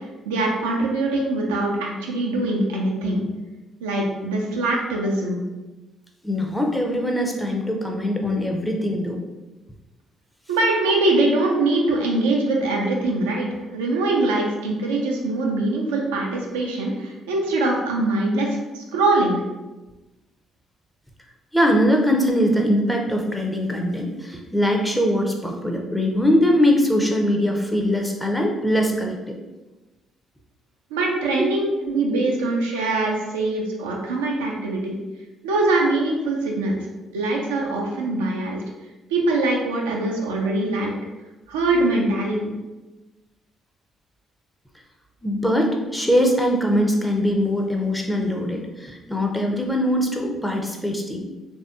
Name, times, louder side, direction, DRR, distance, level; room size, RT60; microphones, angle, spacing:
voice 1, 0.3-3.2 3.8-5.4 10.5-19.4 30.9-34.9 35.4-36.8 37.1-38.6 39.1-41.0 41.5-42.4, right 2 dB, 75° right, -1 dB, 0.4 m, -23 dB
voice 2, 6.2-9.2 21.5-29.4 31.4-31.5 45.2-51.3, equal, 5° left, 1 dB, 0.6 m, -22 dB
3.3 x 2.6 x 2.4 m, 1.1 s
figure-of-eight pair, 45°, 0 cm